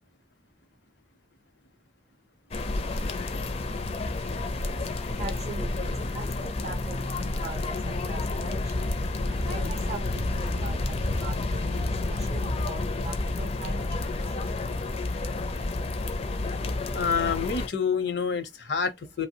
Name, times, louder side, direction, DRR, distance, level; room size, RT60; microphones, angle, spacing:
sound 1, 2.5-17.7, left 2 dB, 35° left, 0.4 m, -30 dB
voice 1, 3.5-17.1, right 3 dB, 35° right, 0.5 m, -43 dB
voice 2, 16.9-19.3, left 6 dB, 75° left, 0.7 m, -27 dB
3.0 x 2.0 x 2.8 m
head